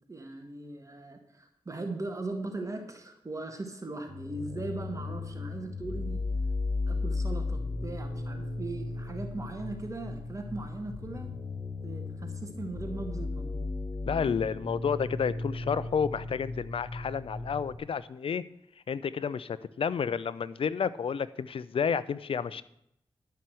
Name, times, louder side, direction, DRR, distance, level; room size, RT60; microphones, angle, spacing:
voice 1, 0.1-6.2 6.9-11.3 11.8-13.7, right 2 dB, 30° right, 4 dB, 1.7 m, -39 dB
sound 1, 4.1-17.8, left 3 dB, 45° left, 3.9 m, -35 dB
voice 2, 14.1-18.4 18.9-22.6, left 6 dB, 65° left, 16 dB, 0.6 m, -30 dB
11.5 x 5.7 x 7.7 m, 0.77 s
cardioid pair, 60°, 10 cm